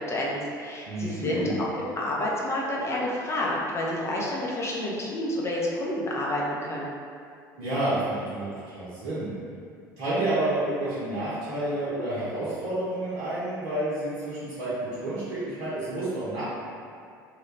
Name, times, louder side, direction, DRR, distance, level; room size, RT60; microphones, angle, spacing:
voice 1, 0.0-6.9, left 1 dB, 25° left, -4 dB, 0.6 m, -29 dB
voice 2, 0.9-1.6 7.6-9.3 10.0-16.4, right 1 dB, 55° right, -10 dB, 0.8 m, -29 dB
3.1 x 2.3 x 3.2 m, 2.3 s
figure-of-eight pair, 65°, 11 cm